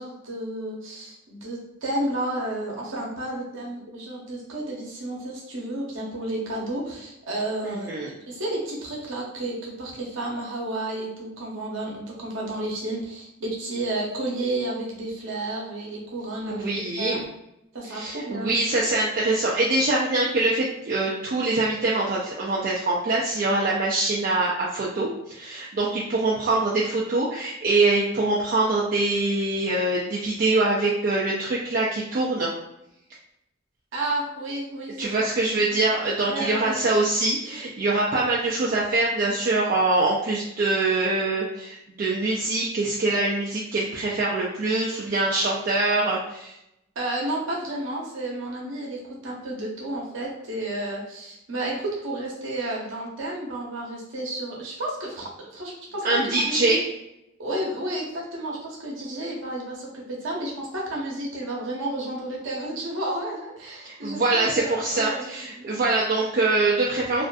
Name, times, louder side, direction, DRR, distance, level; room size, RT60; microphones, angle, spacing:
voice 1, 0.0-16.6 17.0-17.2 17.7-18.5 33.9-35.1 35.5-35.8 36.3-36.8 47.0-56.7 57.4-65.3 65.5-65.8, right 1 dB, 60° right, -3 dB, 0.7 m, -31 dB
voice 2, 7.6-8.1 16.5-17.2 17.9-32.5 35.0-46.5 56.0-56.8 63.8-67.2, right 2 dB, 40° right, -5 dB, 0.3 m, -24 dB
2.5 x 2.4 x 2.2 m, 0.85 s
head